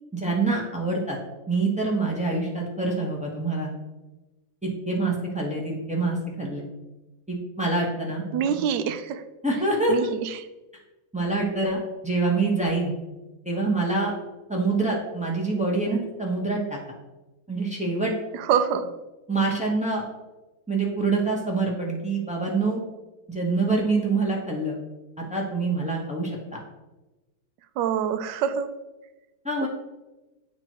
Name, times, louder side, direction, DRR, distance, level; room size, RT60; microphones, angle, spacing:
voice 1, 0.1-1.2 1.5-3.7 4.6-6.6 7.3-8.2 9.4-9.9 11.1-12.9 13.4-14.1 14.5-16.8 17.5-18.1 19.3-20.0 20.7-22.8 23.3-24.8 25.2-26.6 29.4-29.7, right 3 dB, 10° right, -3 dB, 0.3 m, -26 dB
voice 2, 8.3-9.2 9.9-10.4 18.3-18.9 27.8-28.7 29.6-29.7, right 8 dB, 75° right, 10 dB, 1.1 m, -25 dB
8.6 x 2.9 x 4.5 m, 1.1 s
omnidirectional pair, 2.2 m